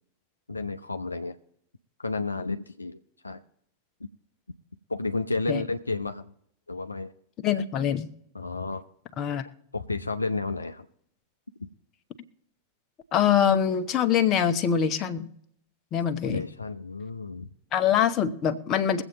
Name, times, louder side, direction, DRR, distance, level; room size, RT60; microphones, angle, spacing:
voice 1, 0.5-1.4 2.0-3.0 3.2-3.4 4.9-6.3 6.7-7.1 8.3-8.8 9.7-10.9 16.2-17.5, left 3 dB, 80° left, 8 dB, 0.5 m, -31 dB
voice 2, 7.4-8.1 9.2-9.5 13.1-15.3 15.9-16.4 17.7-19.0, left 8 dB, 35° left, 8 dB, 0.9 m, -24 dB
22.5 x 8.0 x 3.0 m, 0.72 s
figure-of-eight pair, 90°, 0 cm